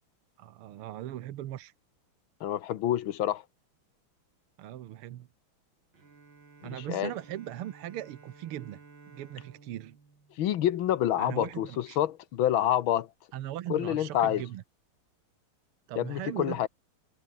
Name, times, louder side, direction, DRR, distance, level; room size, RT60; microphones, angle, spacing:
voice 1, 0.4-1.7 4.6-5.3 6.6-8.8 9.1-10.0 11.2-12.0 13.3-14.6 15.9-16.7, right 13 dB, 85° right, 1.9 m, -39 dB
voice 2, 2.4-3.4 6.9-7.1 10.4-11.7 12.0-13.1 13.7-14.4 16.0-16.7, left 12 dB, 70° left, 1.8 m, -27 dB
Bowed string instrument, 5.9-11.4, right 4 dB, 60° right, 4.4 m, -55 dB
omnidirectional pair, 2.4 m